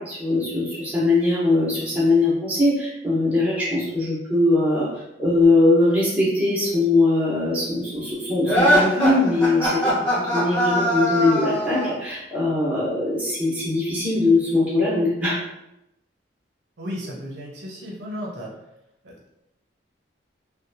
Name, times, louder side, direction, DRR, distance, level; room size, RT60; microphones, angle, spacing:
voice 1, 0.0-4.9 5.2-9.9 10.3-15.4, left 2 dB, 10° right, -9 dB, 0.8 m, -21 dB
sound 1, 8.4-12.0, equal, 20° left, 1.0 m, -21 dB
voice 2, 16.8-18.5 19.0-19.3, equal, 65° right, -3 dB, 0.6 m, -34 dB
2.7 x 2.1 x 2.6 m, 0.86 s
head